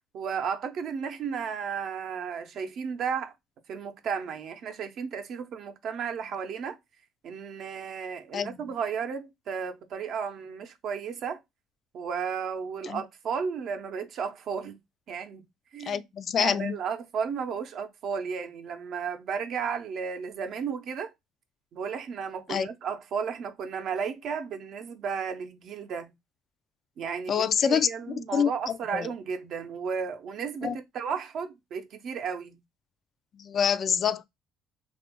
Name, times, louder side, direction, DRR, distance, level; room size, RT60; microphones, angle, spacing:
voice 1, 0.1-3.3 3.7-6.8 7.2-11.4 11.9-14.8 15.1-15.5 15.7-16.0 16.4-21.1 21.7-26.1 27.0-32.6, right 6 dB, 60° right, 0.6 m, -33 dB
voice 2, 15.8-16.7 22.5-22.7 27.3-27.9 28.3-29.1 30.6-30.8 33.3-34.2, left 7 dB, 45° left, 0.3 m, -26 dB
2.9 x 2.4 x 3.5 m
supercardioid pair, 95°, 0 cm